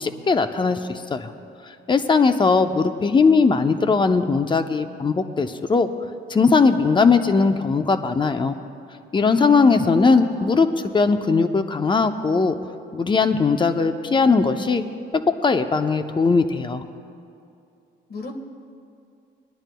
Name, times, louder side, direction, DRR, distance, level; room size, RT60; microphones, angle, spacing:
voice 1, 0.0-1.3 1.9-5.9 6.3-8.6 9.1-10.7 10.9-12.5 12.9-14.8 15.3-16.8, left 4 dB, 25° left, 9 dB, 0.6 m, -19 dB
voice 2, 9.4-10.8 18.1-18.4, left 2 dB, 50° left, 3 dB, 1.5 m, -31 dB
24.5 x 10.5 x 2.2 m, 2.6 s
cardioid pair, 90°, 20 cm